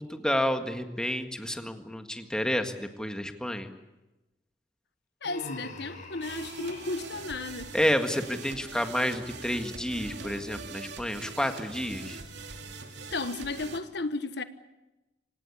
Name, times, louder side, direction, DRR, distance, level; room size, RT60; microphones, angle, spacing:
voice 1, 0.0-3.7 7.7-12.2, equal, 5° left, 1.8 m, -30 dB
voice 2, 5.2-7.7 13.1-14.4, left 3 dB, 70° left, 1.3 m, -34 dB
Human voice, 5.2-7.1, left 1 dB, 45° left, 6.4 m, -43 dB
sound 1, 6.2-13.8, right 3 dB, 85° right, 2.6 m, -42 dB
26.0 x 18.5 x 8.6 m
head